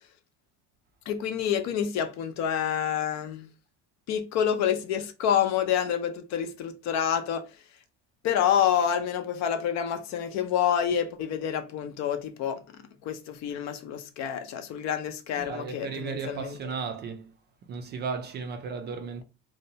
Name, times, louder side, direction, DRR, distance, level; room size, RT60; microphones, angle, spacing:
voice 1, 1.1-3.5 4.1-7.5 8.2-12.6 13.0-16.6, left 9 dB, 55° left, 0.6 m, -28 dB
voice 2, 15.3-17.3 17.7-19.2, right 5 dB, 30° right, 0.4 m, -35 dB
2.7 x 2.1 x 2.7 m
supercardioid pair, 120°, 33 cm